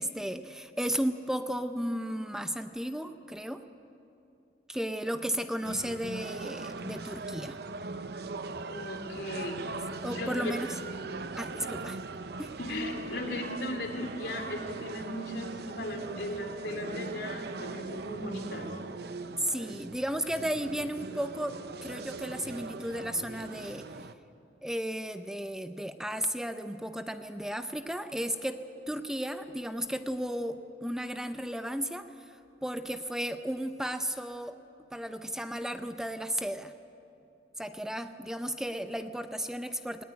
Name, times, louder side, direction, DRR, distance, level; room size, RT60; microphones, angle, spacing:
voice 1, 0.0-3.7 4.7-7.6 10.0-10.7 11.4-12.0 12.4-12.5 19.4-23.9 24.6-34.6 34.9-36.7 37.6-40.0, equal, 5° right, 8 dB, 0.6 m, -34 dB
sound 1, 5.6-24.1, right 3 dB, 65° right, 0.8 m, -40 dB
voice 2, 8.6-9.7 10.1-10.6 12.6-18.8, left 1 dB, 75° left, 3 dB, 3.1 m, -37 dB
19.5 x 18.5 x 9.6 m, 2.7 s
head